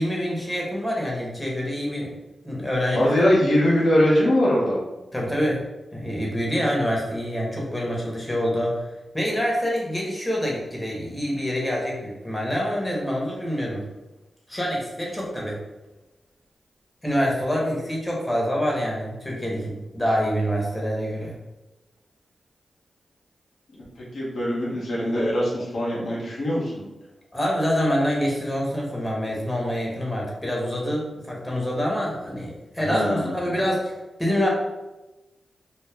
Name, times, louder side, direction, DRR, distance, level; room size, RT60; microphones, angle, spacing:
voice 1, 0.0-2.1 2.4-3.1 5.1-5.6 5.9-8.8 9.1-13.8 14.5-15.6 17.0-21.3 27.3-33.9 34.2-34.5, equal, 15° left, -3 dB, 0.9 m, -26 dB
voice 2, 2.9-4.8 23.7-23.8 24.1-26.7 32.8-33.4, equal, 80° left, -6 dB, 0.7 m, -22 dB
2.3 x 2.0 x 3.3 m, 1.1 s
cardioid pair, 45°, 0 cm